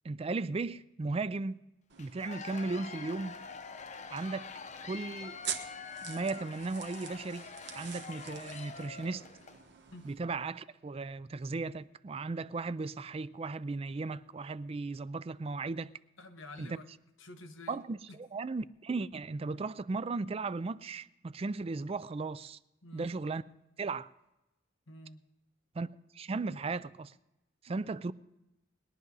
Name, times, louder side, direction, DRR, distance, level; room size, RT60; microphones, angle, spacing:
voice 1, 0.0-1.6 2.0-3.4 4.1-4.5 4.9-5.4 6.0-7.5 7.7-9.3 10.0-15.9 16.6-16.8 17.7-22.6 22.9-23.4 23.8-24.1 25.7-25.9 26.1-27.1 27.6-28.1, right 3 dB, 30° right, 0.4 m, -36 dB
sound 1, 1.9-10.1, right 8 dB, 60° right, 1.3 m, -47 dB
Cheering / Applause / Crowd, 2.0-9.6, left 5 dB, 35° left, 0.7 m, -46 dB
voice 2, 16.2-16.9 17.2-17.8 18.1-18.2 22.8-23.1 24.9-25.2, left 2 dB, 85° left, 1.4 m, -49 dB
21.0 x 10.5 x 4.0 m
head